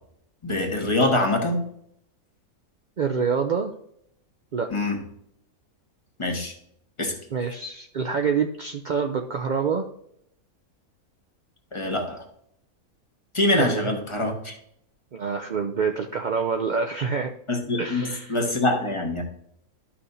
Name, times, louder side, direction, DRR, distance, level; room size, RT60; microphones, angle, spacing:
voice 1, 0.4-1.6 4.7-5.0 6.2-6.5 7.0-7.1 11.7-12.2 13.3-14.5 17.5-19.2, left 2 dB, 20° left, 3 dB, 1.3 m, -24 dB
voice 2, 3.0-3.7 4.5-4.7 7.3-9.9 13.6-13.9 15.1-17.3 17.8-18.4, right 6 dB, 65° right, 4 dB, 0.4 m, -26 dB
12.5 x 5.9 x 2.7 m, 0.73 s
omnidirectional pair, 1.6 m